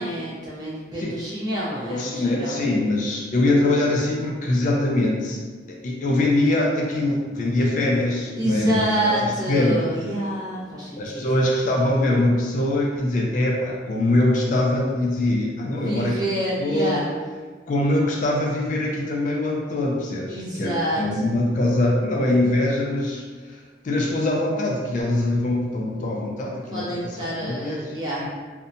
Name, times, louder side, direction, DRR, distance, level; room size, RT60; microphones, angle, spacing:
voice 1, 0.0-2.7 8.4-11.2 15.7-17.1 20.3-21.2 26.7-28.2, right 1 dB, 20° right, -8 dB, 0.7 m, -27 dB
voice 2, 1.9-5.4 5.7-9.8 11.0-16.1 16.6-17.1 17.7-23.6 23.8-28.3, left 1 dB, 45° left, -2 dB, 0.3 m, -23 dB
2.7 x 2.1 x 2.5 m, 1.4 s
head